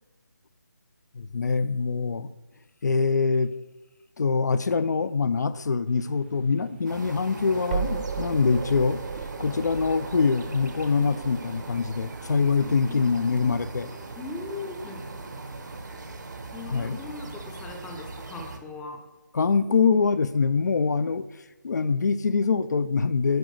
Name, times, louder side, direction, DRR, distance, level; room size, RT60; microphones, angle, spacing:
voice 1, 1.1-2.3 2.8-3.5 4.2-9.0 9.4-13.9 16.7-17.0 19.3-21.3 21.6-23.4, left 5 dB, 60° left, 13 dB, 0.4 m, -24 dB
sound 1, 5.9-16.9, right 5 dB, 35° right, 0.8 m, -38 dB
sound 2, 6.8-18.6, right 3 dB, 65° right, 1.2 m, -40 dB
voice 2, 12.5-13.0 14.2-15.1 16.5-19.0, left 3 dB, 5° left, 3 dB, 0.6 m, -39 dB
9.4 x 4.9 x 6.3 m, 1.1 s
figure-of-eight pair, 160°, 10 cm